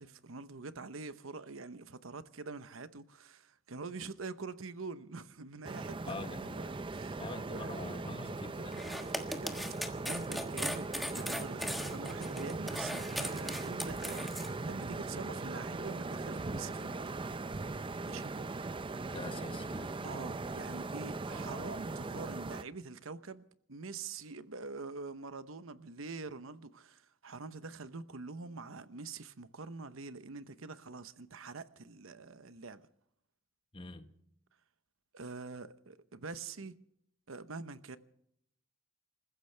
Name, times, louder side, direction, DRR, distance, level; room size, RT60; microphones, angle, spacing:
voice 1, 0.0-6.2 6.6-8.0 9.3-9.5 10.1-17.1 18.0-18.3 20.0-23.4 23.7-32.9 35.1-36.8 37.3-38.0, right 4 dB, 85° right, 0.9 m, -45 dB
sound 1, 5.6-22.6, right 3 dB, 25° right, 0.5 m, -39 dB
voice 2, 6.1-6.6 7.2-8.9 19.1-20.1 33.7-34.1, left 2 dB, 25° left, 1.3 m, -45 dB
sound 2, 8.7-14.5, equal, ahead, 1.4 m, -39 dB
27.5 x 15.0 x 3.4 m
head